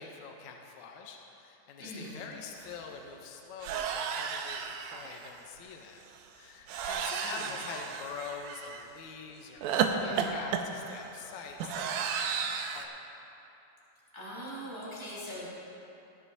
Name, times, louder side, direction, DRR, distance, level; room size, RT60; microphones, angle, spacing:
voice 1, 0.0-6.0 6.3-13.1, left 5 dB, 75° left, 2 dB, 1.9 m, -45 dB
voice 2, 1.8-2.2 7.2-7.4 10.0-10.3 14.1-15.5, equal, 5° right, -8 dB, 2.4 m, -41 dB
sound 1, 2.2-2.3 2.5-2.8 3.6-5.3 6.7-8.9 9.6-12.9, right 7 dB, 80° right, 2.2 m, -33 dB
19.5 x 10.0 x 2.7 m, 2.9 s
omnidirectional pair, 3.7 m